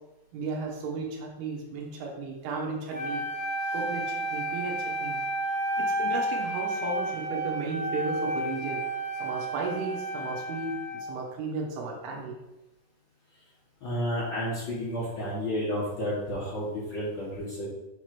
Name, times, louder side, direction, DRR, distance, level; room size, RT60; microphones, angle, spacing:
voice 1, 0.3-3.2 3.6-5.2 5.8-8.8 9.2-12.4, right 3 dB, 90° right, -2 dB, 3.1 m, -34 dB
Wind instrument woodwind instrument, 2.9-11.2, right 1 dB, 70° right, 1.6 m, -31 dB
voice 2, 13.8-17.7, equal, 75° left, -7 dB, 1.0 m, -31 dB
7.7 x 3.2 x 5.9 m, 0.96 s
omnidirectional pair, 4.5 m